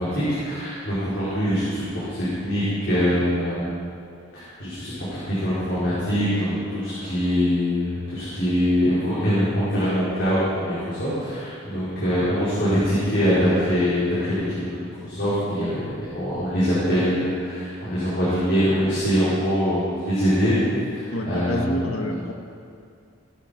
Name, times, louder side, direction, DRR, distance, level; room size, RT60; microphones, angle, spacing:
voice 1, 0.0-3.7 4.3-20.5 20.9-21.9, equal, 50° left, -11 dB, 4.8 m, -23 dB
voice 2, 21.1-22.3, left 1 dB, 80° left, 3 dB, 1.6 m, -28 dB
18.0 x 11.5 x 5.2 m, 2.3 s
head